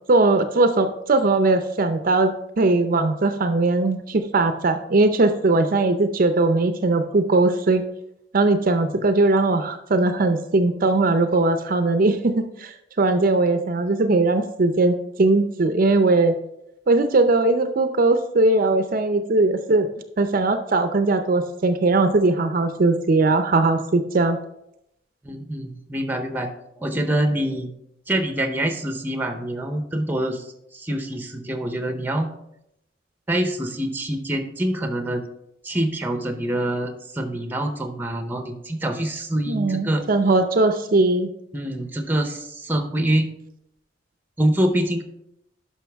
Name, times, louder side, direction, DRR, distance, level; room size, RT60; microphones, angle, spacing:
voice 1, 0.1-2.3 2.6-7.8 8.3-16.3 16.9-19.9 20.2-24.4 39.5-41.3, right 2 dB, 50° right, 8 dB, 0.6 m, -19 dB
voice 2, 25.2-26.5 26.8-27.7 28.1-30.5 30.7-32.3 33.3-35.2 35.6-40.0 41.5-43.3 44.4-45.0, right 1 dB, 10° right, 7 dB, 0.8 m, -25 dB
11.0 x 5.8 x 3.4 m, 0.80 s
head